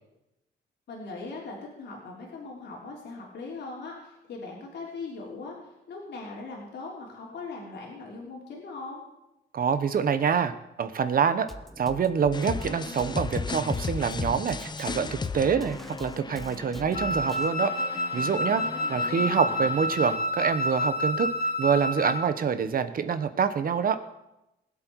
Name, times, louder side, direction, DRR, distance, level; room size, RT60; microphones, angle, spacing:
voice 1, 0.9-9.0 18.6-19.3, left 3 dB, 75° left, -2 dB, 3.3 m, -40 dB
voice 2, 9.5-10.5 10.8-11.5 11.8-17.7 18.1-18.6 18.9-21.3 21.6-24.0, right 7 dB, 55° right, 11 dB, 1.0 m, -26 dB
Drum kit, 11.5-17.5, left 1 dB, ahead, 0.9 m, -42 dB
sound 1, 12.3-20.2, left 5 dB, 25° left, 0.5 m, -36 dB
Wind instrument woodwind instrument, 16.9-22.3, left 1 dB, 55° left, 1.7 m, -29 dB
20.0 x 8.0 x 4.7 m, 0.91 s
cardioid pair, 115°, 18 cm